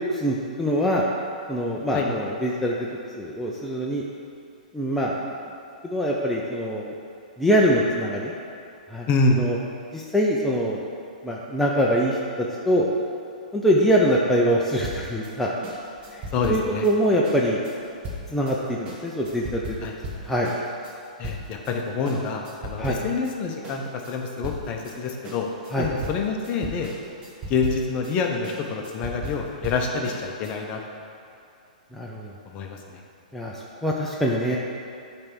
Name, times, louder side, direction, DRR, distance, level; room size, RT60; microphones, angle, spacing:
voice 1, 0.1-1.0 1.5-2.9 3.2-4.0 4.7-5.3 5.8-6.9 7.4-8.3 8.9-9.1 9.4-9.6 9.9-10.9 11.2-12.9 13.5-15.5 16.1-16.2 16.5-17.6 18.3-19.7 20.2-20.5 22.8-23.0 25.7-25.9 31.9-32.3 33.3-34.6, equal, 5° left, -4 dB, 0.6 m, -23 dB
voice 2, 9.1-9.4 16.3-16.8 19.8-20.0 21.2-25.5 25.8-26.9 27.5-30.8 32.5-33.0, left 4 dB, 30° left, 2 dB, 0.9 m, -26 dB
sound 1, 14.8-21.8 22.1-23.4 23.6-30.5, right 1 dB, 25° right, 1.3 m, -37 dB
8.6 x 3.4 x 6.2 m, 2.6 s
hypercardioid pair, 140°, 5 cm